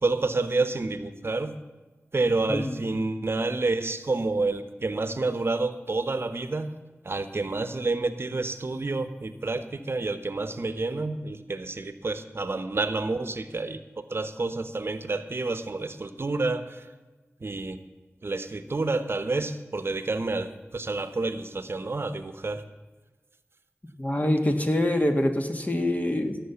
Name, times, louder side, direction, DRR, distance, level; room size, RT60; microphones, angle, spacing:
voice 1, 0.0-1.5 2.1-6.7 7.0-13.8 14.1-16.8 17.4-17.8 18.2-22.6, right 3 dB, 55° right, 11 dB, 0.9 m, -29 dB
voice 2, 24.0-26.4, left 1 dB, 30° left, 5 dB, 1.6 m, -25 dB
16.5 x 7.5 x 6.9 m, 1.2 s
wide cardioid pair, 55°, 5 cm